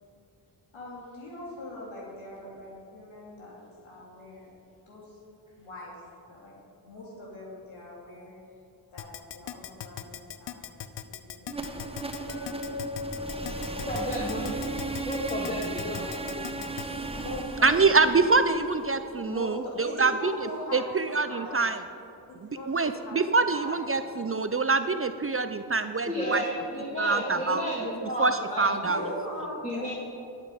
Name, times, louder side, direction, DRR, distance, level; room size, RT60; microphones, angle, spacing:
voice 1, 0.7-4.5 4.9-5.2 5.6-6.0 6.3-8.3 8.9-10.8 11.0-11.5 12.1-12.6 13.1-14.2 14.5-14.6 14.9-15.1 16.0-16.8 17.1-18.0 18.4-18.5 19.2-21.7 22.3-23.2 23.5-23.9 28.8-29.9, left 1 dB, 85° left, -4 dB, 2.6 m, -41 dB
Keyboard (musical), 9.0-16.8, left 10 dB, 65° left, 0.7 m, -38 dB
sound 1, 11.5-19.4, right 3 dB, 10° right, 1.1 m, -36 dB
Chink clink, 12.3-16.7, left 3 dB, 30° left, 1.8 m, -41 dB
voice 2, 13.9-16.0 26.1-29.1 29.6-29.9, equal, 15° left, -6 dB, 2.6 m, -32 dB
voice 3, 17.6-20.3 20.7-21.8 22.4-26.4 27.0-27.6 28.2-29.0, right 4 dB, 30° right, 10 dB, 0.5 m, -25 dB
11.0 x 8.2 x 5.1 m, 2.7 s
supercardioid pair, 40°, 47 cm